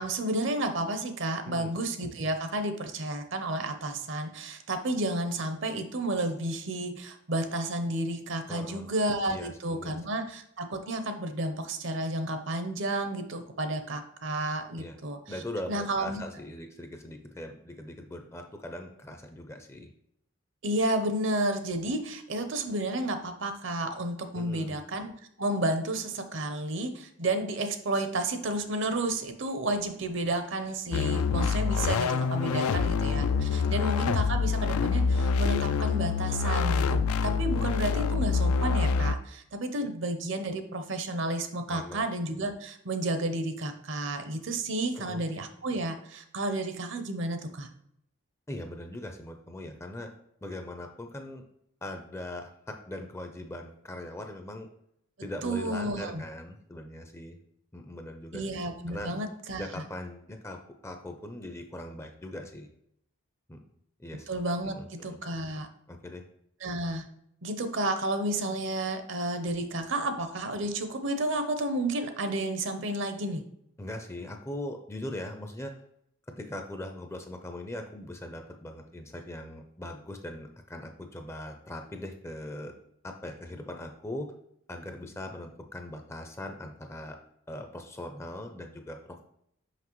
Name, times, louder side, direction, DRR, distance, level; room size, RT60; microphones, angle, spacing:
voice 1, 0.0-15.4 15.7-16.2 20.6-25.1 25.4-47.7 55.4-56.2 58.3-59.8 64.3-65.7 66.6-67.1 67.4-73.4, right 1 dB, 55° right, 8 dB, 0.6 m, -31 dB
voice 2, 8.5-8.9 9.3-10.0 14.8-15.0 15.3-19.9 24.3-24.8 32.4-32.8 33.5-33.8 39.8-39.9 41.7-42.1 44.9-45.4 48.5-50.1 50.4-51.4 51.8-54.7 55.2-57.4 57.7-58.4 58.9-59.1 59.6-62.7 63.5-63.6 64.0-64.3 64.7-65.2 65.9-66.2 73.8-75.7 76.4-82.7 83.0-84.3 84.7-87.2 87.5-89.2, left 1 dB, 10° left, 5 dB, 0.4 m, -40 dB
sound 1, 30.9-39.2, left 5 dB, 85° left, 0.4 m, -26 dB
5.8 x 5.5 x 3.0 m, 0.73 s
head